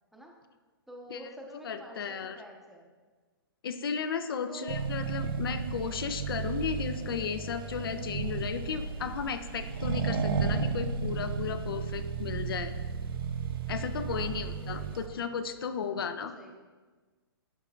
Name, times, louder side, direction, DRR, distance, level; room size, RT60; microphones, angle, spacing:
voice 1, 0.9-2.9 4.5-4.9 14.0-15.2 15.9-16.6, right 1 dB, ahead, 0 dB, 0.7 m, -48 dB
voice 2, 1.6-2.4 3.6-12.7 13.7-16.4, left 6 dB, 70° left, 10 dB, 0.5 m, -34 dB
Accelerating revving vroom, 4.7-15.1, right 5 dB, 65° right, 0.7 m, -33 dB
11.0 x 3.8 x 2.4 m, 1.4 s
hypercardioid pair, 130°, 13 cm